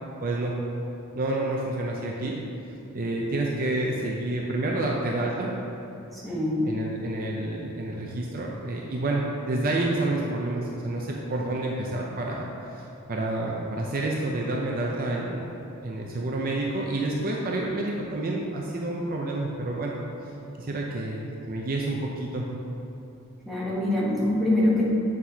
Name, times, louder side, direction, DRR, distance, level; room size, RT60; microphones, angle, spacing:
voice 1, 0.2-0.5 1.1-2.4 2.9-5.5 6.6-15.5 15.8-19.9 20.6-22.5, right 2 dB, 40° right, -2 dB, 0.5 m, -29 dB
voice 2, 6.1-6.7 23.4-24.9, left 1 dB, ahead, -8 dB, 1.2 m, -24 dB
7.7 x 6.0 x 2.9 m, 3.0 s
head